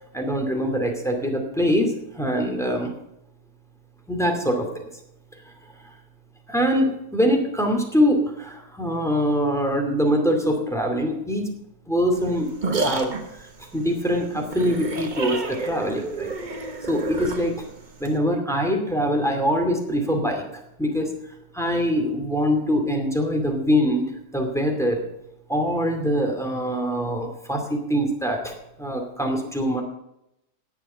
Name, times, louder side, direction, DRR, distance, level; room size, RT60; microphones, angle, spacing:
voice 1, 0.1-2.9 4.1-4.7 6.5-11.5 11.9-13.1 13.4-16.3 16.9-17.6 18.0-21.1 21.5-24.1 24.3-25.0 25.5-29.8, equal, ahead, 2 dB, 2.4 m, -23 dB
sound 1, 12.1-18.2, right 3 dB, 30° right, 1.3 m, -30 dB
18.0 x 7.1 x 5.7 m, 0.83 s
omnidirectional pair, 1.6 m